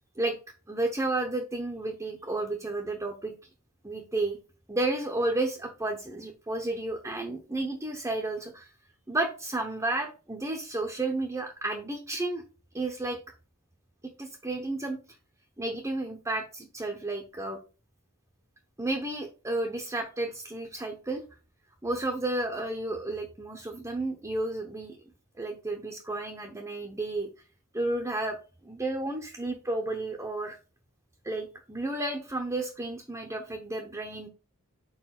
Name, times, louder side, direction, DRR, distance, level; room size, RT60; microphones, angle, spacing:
voice 1, 0.7-3.3 3.8-4.4 4.7-8.7 9.1-12.4 12.7-13.2 14.2-15.0 15.6-17.6 18.8-21.2 21.8-25.0 25.4-27.3 27.7-28.4 28.6-30.6 31.2-34.3, right 2 dB, 15° right, 3 dB, 0.8 m, -32 dB
4.7 x 4.2 x 5.8 m, 0.34 s
head